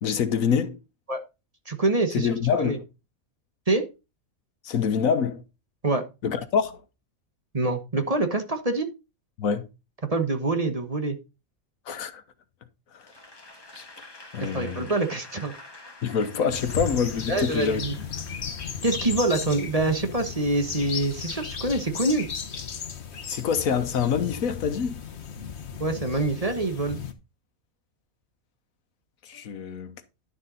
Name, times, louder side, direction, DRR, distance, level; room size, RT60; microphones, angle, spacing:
voice 1, 0.0-0.8 2.1-2.8 4.6-5.4 6.2-6.8 9.4-9.7 11.9-12.2 12.9-13.1 13.7-13.9 14.3-14.9 16.0-17.8 23.3-24.9 29.2-30.0, left 7 dB, 80° left, 1.4 m, -26 dB
voice 2, 1.7-2.3 2.6-2.8 3.7-3.9 5.8-6.0 7.5-8.9 10.1-11.2 14.5-15.5 17.3-17.9 18.8-22.3 25.8-27.0, right 2 dB, 30° right, 1.3 m, -25 dB
Applause / Crowd, 13.0-19.4, left 2 dB, 15° left, 1.9 m, -47 dB
sound 1, 16.5-27.1, left 6 dB, 55° left, 1.4 m, -35 dB
11.0 x 7.1 x 3.9 m
omnidirectional pair, 1.4 m